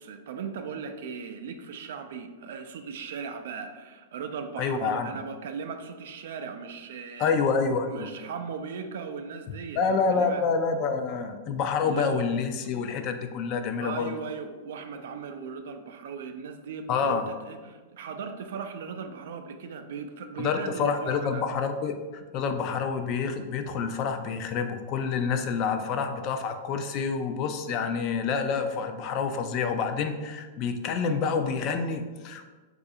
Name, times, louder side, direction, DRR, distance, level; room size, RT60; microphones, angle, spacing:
voice 1, 0.0-7.3 7.9-10.4 11.8-12.2 13.8-21.4, right 6 dB, 75° right, 6 dB, 0.3 m, -38 dB
voice 2, 4.6-5.2 7.2-8.1 9.8-14.1 16.9-17.3 20.4-32.5, left 5 dB, 40° left, 7 dB, 0.3 m, -28 dB
4.0 x 2.4 x 2.7 m, 1.3 s
hypercardioid pair, 135°, 0 cm